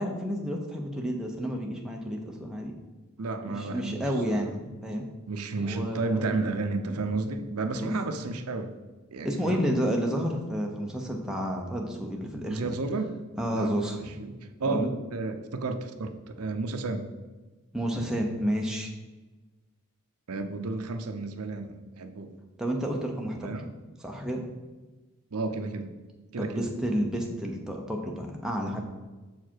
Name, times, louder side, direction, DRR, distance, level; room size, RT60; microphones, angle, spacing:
voice 1, 0.0-2.8 3.5-5.0 5.6-6.4 6.9-7.0 7.7-8.0 9.2-12.8 13.4-14.1 14.7-14.9 17.7-18.9 22.6-23.5 24.0-24.4 26.4-28.8, equal, 5° right, 0 dB, 0.8 m, -30 dB
voice 2, 3.2-4.4 5.3-8.7 9.1-9.6 12.5-13.2 13.5-17.1 20.3-22.3 23.4-23.7 25.3-25.9 26.3-26.7, right 3 dB, 90° right, 7 dB, 0.7 m, -32 dB
7.3 x 4.8 x 4.5 m, 1.2 s
head